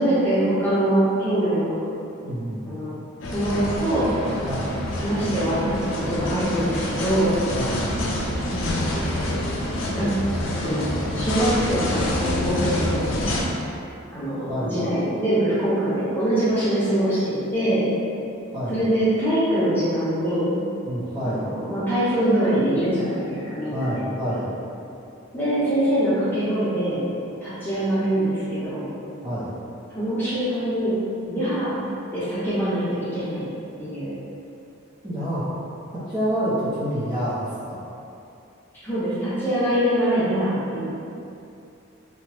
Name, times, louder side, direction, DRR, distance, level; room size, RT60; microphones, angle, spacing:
voice 1, 0.0-1.8 2.6-2.9 3.3-4.2 5.0-7.4 8.5-9.3 9.9-10.2 10.5-10.9 11.1-13.0 14.1-17.9 18.7-20.6 21.2-21.4 21.7-24.0 25.3-27.1 27.4-28.9 29.9-31.0 31.3-33.5 33.8-34.2 38.8-40.8, right 1 dB, 10° left, -13 dB, 0.8 m, -23 dB
voice 2, 2.2-2.7 4.4-4.7 7.5-7.8 14.4-14.8 18.5-18.8 20.8-21.4 23.7-24.5 29.2-29.5 35.0-35.4 36.1-37.8, equal, 20° right, -13 dB, 0.6 m, -27 dB
sound 1, 3.2-13.4, left 1 dB, 70° left, 0.4 m, -27 dB
2.9 x 2.1 x 3.0 m, 2.6 s
head